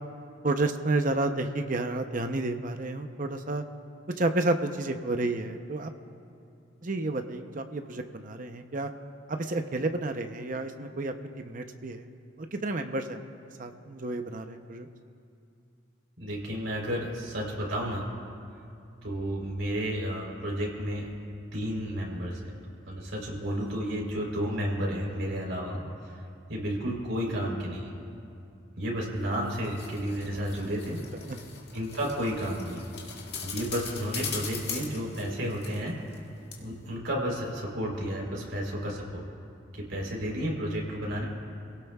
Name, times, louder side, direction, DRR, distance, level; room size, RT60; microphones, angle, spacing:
voice 1, 0.4-3.6 4.2-5.9 6.8-8.9 9.3-12.1 12.4-13.2 13.6-14.9 31.1-31.4, right 2 dB, 45° right, 7 dB, 0.7 m, -31 dB
voice 2, 16.2-18.1 19.0-21.1 21.5-22.4 22.9-26.2 26.5-27.9 28.8-31.0 31.7-32.8 33.4-36.0 36.6-39.2 39.7-41.2, equal, 80° right, -2 dB, 3.7 m, -32 dB
sound 1, 29.2-36.2 36.5-36.6, left 6 dB, 55° left, 2.0 m, -40 dB
28.5 x 17.5 x 2.4 m, 2.6 s
head